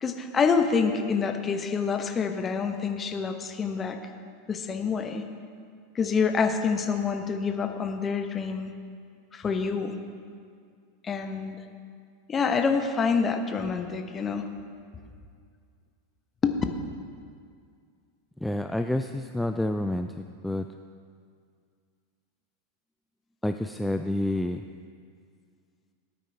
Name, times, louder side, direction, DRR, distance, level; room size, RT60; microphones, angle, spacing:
voice 1, 0.0-4.0 4.5-5.3 5.9-8.7 9.3-10.0 11.0-11.6 12.3-14.4 16.4-16.6, left 5 dB, 25° left, 6 dB, 1.0 m, -27 dB
voice 2, 18.4-20.7 23.4-24.6, left 1 dB, 5° left, 7 dB, 0.4 m, -29 dB
17.0 x 9.1 x 3.4 m, 2.2 s
figure-of-eight pair, 85°, 0 cm